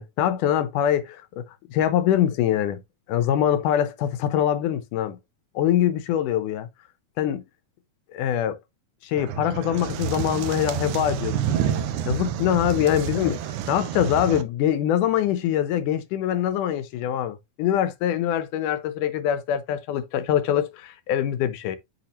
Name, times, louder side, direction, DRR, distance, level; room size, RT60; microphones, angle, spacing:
voice 1, 0.0-1.4 1.7-2.8 3.1-5.2 5.6-6.7 7.2-7.4 8.1-8.6 9.0-13.4 13.7-21.8, left 10 dB, 75° left, 2.1 m, -24 dB
sound 1, 9.2-14.4, right 9 dB, 75° right, 2.0 m, -29 dB
8.8 x 5.5 x 2.9 m
omnidirectional pair, 4.0 m